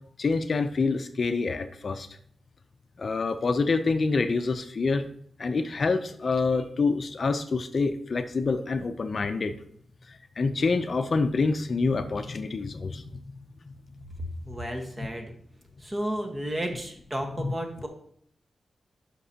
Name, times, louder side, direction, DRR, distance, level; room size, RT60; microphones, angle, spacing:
voice 1, 0.2-2.1 3.0-5.0 5.4-9.6 10.4-13.0 15.0-15.1 17.4-17.5, left 4 dB, 50° left, 9 dB, 0.5 m, -26 dB
voice 2, 14.4-15.3 15.8-17.9, right 1 dB, 25° right, 3 dB, 1.3 m, -32 dB
9.8 x 5.8 x 2.8 m, 0.66 s
cardioid pair, 85°, 0 cm